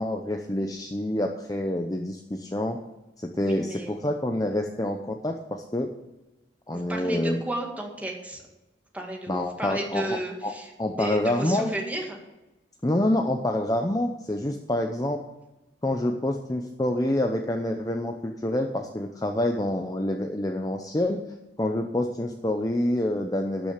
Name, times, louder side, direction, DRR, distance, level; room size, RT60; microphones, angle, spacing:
voice 1, 0.0-2.8 3.2-5.9 6.7-7.4 9.3-10.5 10.8-11.7 12.8-15.2 15.8-21.2 21.6-23.7, left 1 dB, 20° left, 3 dB, 0.6 m, -27 dB
voice 2, 3.4-4.1 6.7-8.4 8.9-12.2, right 1 dB, 10° right, 1 dB, 2.0 m, -33 dB
12.0 x 6.3 x 8.2 m, 1.0 s
head